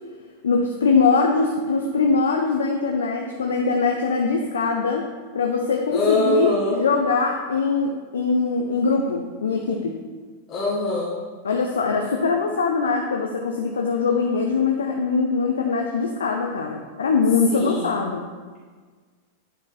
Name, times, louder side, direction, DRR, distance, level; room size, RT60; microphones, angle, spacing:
voice 1, 0.4-5.1 5.3-10.0 11.4-18.2, left 4 dB, 70° left, 2 dB, 0.6 m, -22 dB
voice 2, 5.9-6.8 10.5-11.1 17.5-18.0, left 2 dB, 35° left, -6 dB, 1.7 m, -23 dB
9.1 x 4.8 x 4.1 m, 1.5 s
figure-of-eight pair, 90°, 0 cm